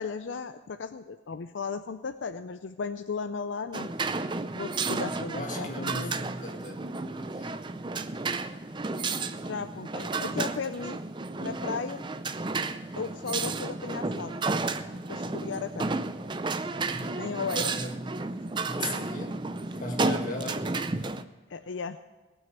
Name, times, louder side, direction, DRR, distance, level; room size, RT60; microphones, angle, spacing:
voice 1, 0.0-3.9 4.6-6.2 9.4-11.0 11.4-12.1 13.0-14.4 15.1-15.9 17.2-17.9 18.8-19.0 19.7-20.2 21.5-22.0, left 5 dB, 75° left, 10 dB, 0.5 m, -36 dB
sound 1, 3.7-21.2, right 3 dB, 25° right, 0.5 m, -32 dB
voice 2, 5.2-6.8 7.2-7.5 16.9-17.3 17.6-18.0 18.6-19.4 19.8-20.7, left 1 dB, 40° left, 1 dB, 2.0 m, -37 dB
18.0 x 6.3 x 8.1 m, 1.3 s
head